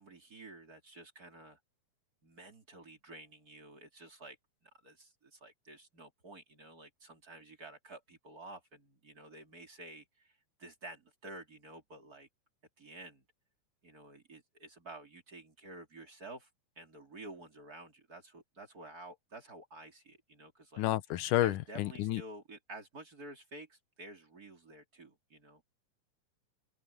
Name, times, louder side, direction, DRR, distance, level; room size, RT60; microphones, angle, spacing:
voice 1, 0.0-1.6 2.2-4.4 4.6-12.3 12.8-13.2 13.8-16.5 16.8-20.8 21.4-25.6, right 2 dB, 30° right, 3.1 m, -51 dB
voice 2, 20.8-22.2, left 14 dB, 85° left, 2.4 m, -30 dB
omnidirectional pair, 3.5 m